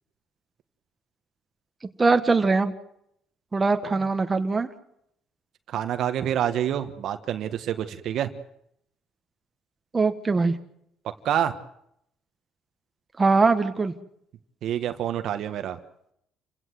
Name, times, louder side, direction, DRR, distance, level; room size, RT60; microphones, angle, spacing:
voice 1, 2.0-2.7 3.5-4.7 9.9-10.5 13.2-13.9, right 3 dB, 25° right, 7 dB, 1.6 m, -21 dB
voice 2, 5.7-8.3 11.2-11.5 14.6-15.8, right 10 dB, 65° right, 9 dB, 1.5 m, -27 dB
28.5 x 16.5 x 7.8 m, 0.75 s
cardioid pair, 110°, 0 cm